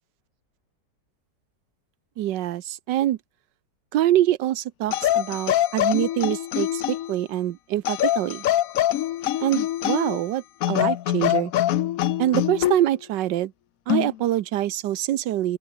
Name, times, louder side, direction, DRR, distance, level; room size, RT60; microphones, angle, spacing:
voice 1, 2.2-3.2 3.9-8.4 9.4-11.5 12.2-13.5 13.9-15.6, right 13 dB, 85° right, 1.4 m, -25 dB
sound 1, 4.9-7.2 7.8-10.2 10.6-12.8 13.9-14.1, left 13 dB, 65° left, 0.9 m, -24 dB
open air
omnidirectional pair, 1.9 m